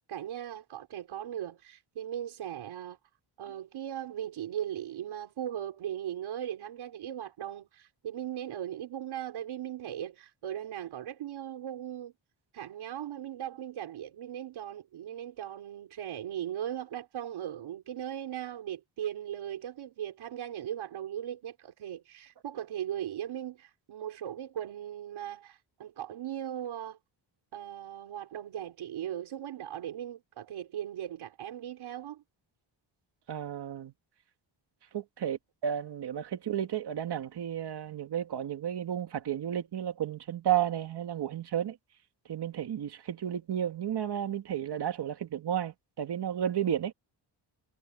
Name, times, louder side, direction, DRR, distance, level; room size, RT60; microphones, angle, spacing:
voice 1, 0.1-3.0 3.4-12.1 12.5-27.0 27.5-32.2, right 10 dB, 90° right, 3.7 m, -38 dB
voice 2, 33.3-33.9 34.9-41.8 42.3-46.9, right 10 dB, 55° right, 1.9 m, -32 dB
wide cardioid pair, 160°, 47 cm